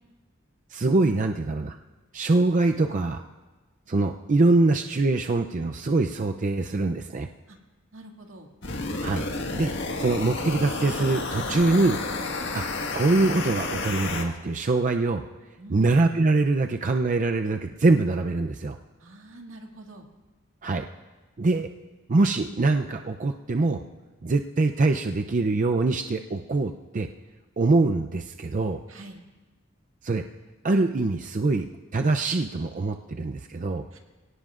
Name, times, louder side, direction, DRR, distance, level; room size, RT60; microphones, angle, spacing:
voice 1, 0.7-1.8 2.1-3.2 3.9-7.3 9.0-9.2 9.5-9.7 10.0-12.0 12.5-12.6 12.9-15.2 15.7-18.8 20.6-20.8 21.4-21.7 22.1-23.8 24.2-27.1 27.6-28.8 30.0-30.2 30.6-33.8, right 3 dB, 40° right, 5 dB, 0.5 m, -23 dB
voice 2, 7.9-8.5 15.6-15.9 19.0-20.1 28.9-29.2 33.9-34.0, right 1 dB, 75° right, 2 dB, 2.1 m, -45 dB
sound 1, 8.6-14.2, left 3 dB, 60° left, 1.7 m, -31 dB
26.5 x 18.0 x 2.5 m, 1.2 s
head